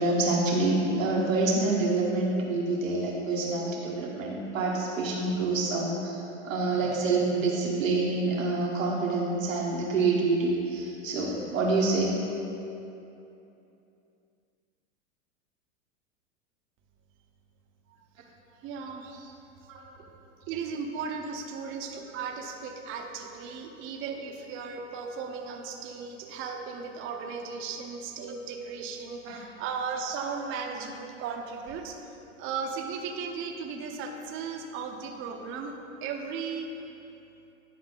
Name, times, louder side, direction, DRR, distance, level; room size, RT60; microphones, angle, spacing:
voice 1, 0.0-12.1 19.7-19.8 29.2-29.4, right 3 dB, 90° right, -3 dB, 1.4 m, -27 dB
voice 2, 18.6-19.4 20.5-32.0 32.4-35.7 36.0-36.7, right 5 dB, 35° right, 3 dB, 0.8 m, -36 dB
9.7 x 4.8 x 3.9 m, 2.8 s
hypercardioid pair, 125°, 38 cm